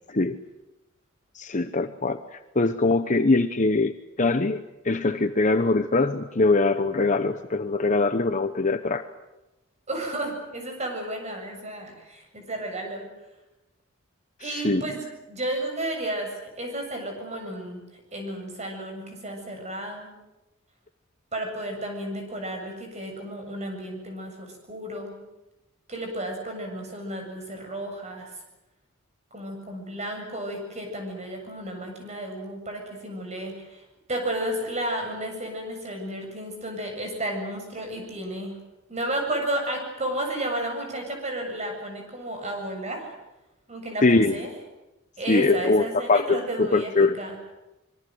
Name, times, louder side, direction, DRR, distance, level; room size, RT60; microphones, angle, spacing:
voice 1, 1.3-2.2 2.5-9.0 14.5-14.8 44.0-44.4 45.3-47.1, left 3 dB, 35° left, 9 dB, 0.9 m, -22 dB
voice 2, 9.9-13.1 14.4-17.8 18.1-20.1 21.3-25.2 25.9-28.3 29.3-33.8 34.1-38.5 38.9-43.1 43.7-44.6 45.2-47.4, right 1 dB, 35° right, 3 dB, 7.6 m, -32 dB
25.5 x 23.0 x 7.9 m, 0.99 s
head